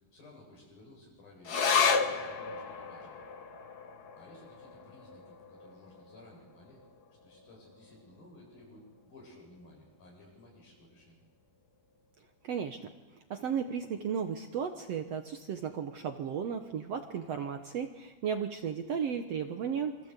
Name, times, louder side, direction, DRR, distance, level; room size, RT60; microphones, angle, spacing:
voice 1, 0.1-3.2 4.2-6.8 7.2-11.2, left 1 dB, 90° left, -1 dB, 9.9 m, -56 dB
sound 1, 1.4-8.2 8.5-8.6 9.0-9.6 10.2-10.3, left 5 dB, 75° left, 0.9 m, -34 dB
voice 2, 12.4-12.8 13.3-20.1, right 7 dB, 60° right, 7 dB, 1.7 m, -34 dB
27.0 x 26.0 x 8.3 m, 1.2 s
omnidirectional pair, 4.1 m